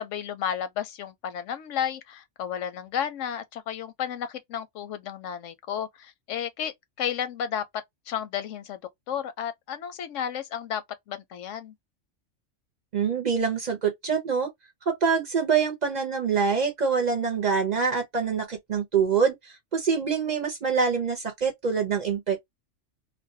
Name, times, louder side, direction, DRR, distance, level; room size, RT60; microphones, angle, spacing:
voice 1, 0.0-7.6 8.1-8.8 9.1-11.7, left 9 dB, 90° left, 0.9 m, -32 dB
voice 2, 12.9-14.5 14.9-22.4, right 6 dB, 50° right, 0.6 m, -25 dB
2.5 x 2.1 x 2.6 m
omnidirectional pair, 1.2 m